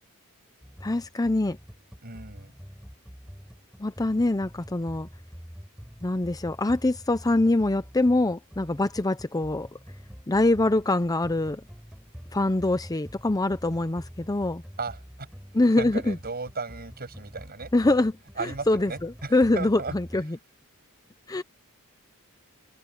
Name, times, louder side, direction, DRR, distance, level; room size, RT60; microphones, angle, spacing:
sound 1, 0.6-20.3, equal, 5° right, 4.8 m, -46 dB
voice 1, 0.8-1.6 3.8-5.1 6.0-9.7 10.3-11.6 12.3-14.6 15.5-16.2 17.7-18.1 18.4-20.4 21.3-21.4, left 2 dB, 15° left, 0.6 m, -24 dB
voice 2, 2.0-2.5 14.8-15.3 15.8-17.7 18.4-20.0, right 4 dB, 45° right, 7.9 m, -35 dB
head